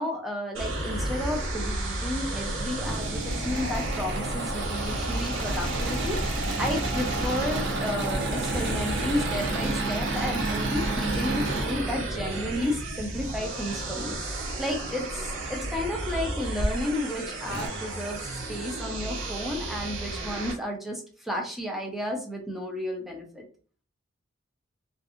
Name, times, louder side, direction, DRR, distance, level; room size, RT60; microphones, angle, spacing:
voice 1, 0.0-23.5, left 1 dB, ahead, 0 dB, 0.5 m, -32 dB
sound 1, 0.5-20.5, right 1 dB, 85° right, 1.0 m, -32 dB
Engine / Mechanisms, 2.5-12.8 14.4-15.1 15.7-15.8 16.1-16.2 17.1-17.2 17.4-17.7, right 2 dB, 60° right, 0.7 m, -32 dB
2.6 x 2.5 x 2.5 m, 0.41 s
head